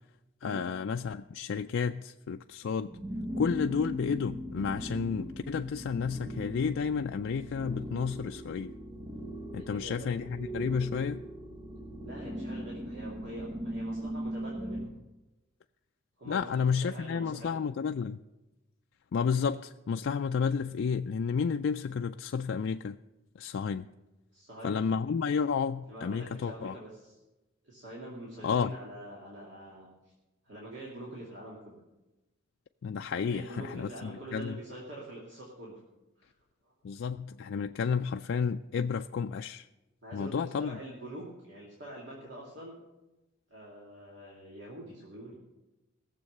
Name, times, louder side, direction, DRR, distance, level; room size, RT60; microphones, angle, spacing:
voice 1, 0.4-2.9 3.4-8.7 9.5-11.2 16.3-18.2 19.1-23.0 23.4-23.9 24.6-26.8 28.4-28.7 32.8-34.6 36.8-39.7 40.1-40.8, left 6 dB, 65° left, 6 dB, 0.3 m, -31 dB
sound 1, 2.9-14.9, equal, 20° right, 1.1 m, -39 dB
voice 2, 9.5-10.1 12.0-14.9 16.2-17.7 24.3-24.8 25.9-27.2 27.6-29.9 30.4-31.8 33.1-35.8 36.2-36.3 36.6-36.7 40.0-42.8 43.5-45.4, right 1 dB, 60° right, -4 dB, 2.5 m, -45 dB
17.0 x 7.3 x 6.6 m, 1.0 s
head